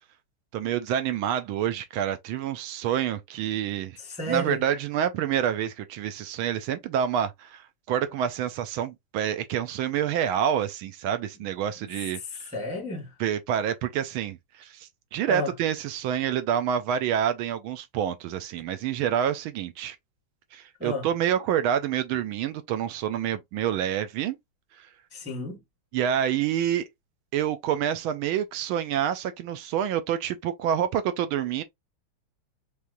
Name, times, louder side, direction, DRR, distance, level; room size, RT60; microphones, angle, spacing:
voice 1, 0.5-4.0 4.3-12.2 13.2-20.0 20.5-24.4 24.8-24.9 25.9-26.8 27.3-31.6, right 9 dB, 75° right, 1.4 m, -27 dB
voice 2, 4.0-4.6 12.5-13.1 15.3-15.5 20.8-21.1 25.1-25.6, left 1 dB, 5° right, 0.9 m, -31 dB
4.6 x 3.4 x 2.5 m
omnidirectional pair, 2.4 m